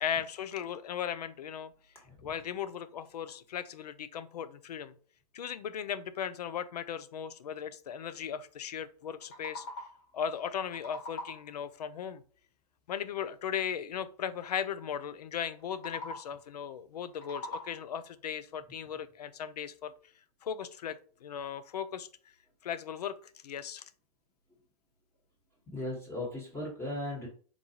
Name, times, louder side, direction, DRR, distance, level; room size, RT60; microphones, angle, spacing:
voice 1, 0.0-1.7 2.2-4.9 5.3-9.7 10.1-12.2 12.9-19.9 20.4-22.1 22.6-23.8, left 8 dB, 85° left, 13 dB, 0.4 m, -37 dB
sound 1, 9.0-10.1 10.5-11.6 15.6-16.5 16.9-18.0, left 2 dB, 50° left, 1.3 m, -43 dB
voice 2, 25.7-27.3, left 1 dB, 10° left, -2 dB, 1.2 m, -37 dB
3.9 x 2.3 x 2.8 m, 0.42 s
hypercardioid pair, 110°, 20 cm